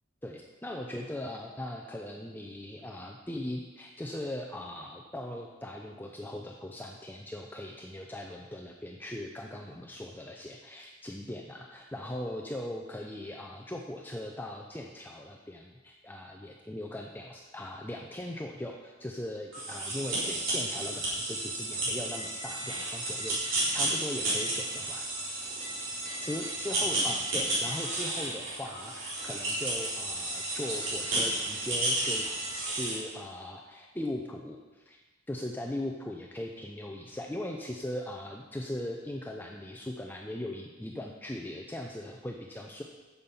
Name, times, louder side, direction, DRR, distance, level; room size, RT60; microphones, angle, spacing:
voice 1, 0.2-25.4 26.2-32.3 32.6-35.0 35.3-42.8, left 1 dB, 10° left, 1 dB, 0.5 m, -39 dB
sound 1, 19.5-33.0, right 1 dB, 65° right, 3.9 m, -32 dB
9.5 x 7.1 x 5.5 m, 1.2 s
head